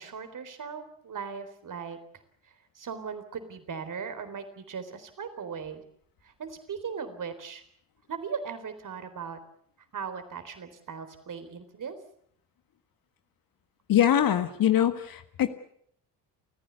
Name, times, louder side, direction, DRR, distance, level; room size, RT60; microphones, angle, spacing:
voice 1, 0.0-2.2 2.7-5.8 6.2-7.6 8.1-9.4 9.9-12.0, right 6 dB, 40° right, 10 dB, 4.0 m, -38 dB
voice 2, 13.9-15.5, left 10 dB, 45° left, 10 dB, 1.6 m, -23 dB
29.5 x 15.0 x 8.3 m, 0.67 s
figure-of-eight pair, 50°, 48 cm